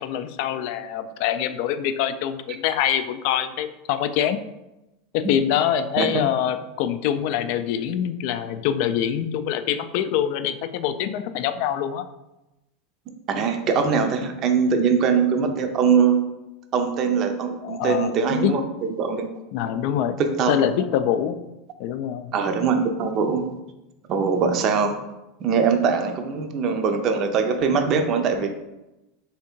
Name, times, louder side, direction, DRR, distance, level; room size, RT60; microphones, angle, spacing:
voice 1, 0.0-4.4 5.1-12.1 17.6-18.5 19.5-20.2 20.5-21.4 21.8-22.3, left 10 dB, 60° left, 10 dB, 0.3 m, -25 dB
voice 2, 13.3-16.2 16.7-19.3 20.2-20.7 22.3-23.5 24.1-25.0 25.4-28.5, right 5 dB, 40° right, 5 dB, 0.5 m, -22 dB
3.5 x 2.7 x 4.4 m, 0.96 s
supercardioid pair, 125°, 0 cm